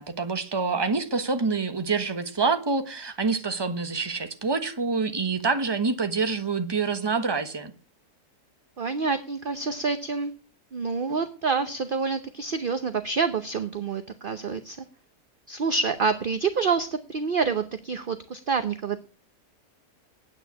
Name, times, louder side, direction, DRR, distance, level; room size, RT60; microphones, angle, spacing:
voice 1, 0.0-7.7, right 4 dB, 15° right, 1.1 m, -26 dB
voice 2, 8.8-10.3 10.7-14.8 15.5-19.0, right 5 dB, 45° right, 0.8 m, -27 dB
9.6 x 8.9 x 8.3 m
omnidirectional pair, 1.7 m